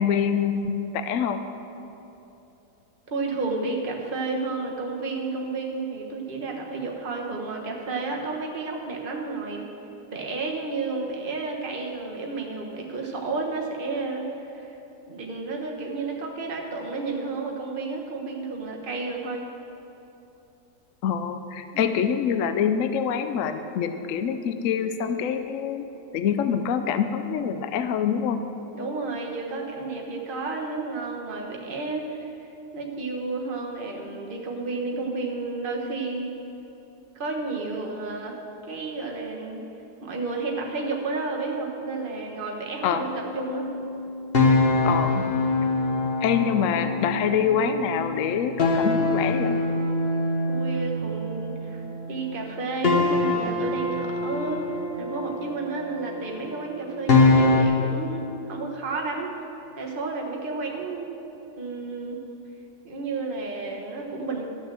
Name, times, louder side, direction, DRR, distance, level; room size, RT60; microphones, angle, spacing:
voice 1, 0.0-1.4 21.0-25.9 26.1-28.4 42.8-43.0 44.8-45.2 46.2-49.6, left 7 dB, 70° left, 9 dB, 0.7 m, -25 dB
voice 2, 3.1-9.7 10.1-14.8 15.1-19.5 21.7-22.0 28.7-36.3 37.1-38.4 38.7-39.6 40.0-43.7 50.5-54.7 55.0-59.3 59.8-61.1 61.6-62.2 62.8-64.4, right 3 dB, 30° right, -1 dB, 1.4 m, -31 dB
sound 1, 43.0-52.2 52.8-57.6, left 2 dB, 40° left, 1.1 m, -24 dB
13.0 x 6.5 x 7.6 m, 2.9 s
omnidirectional pair, 1.9 m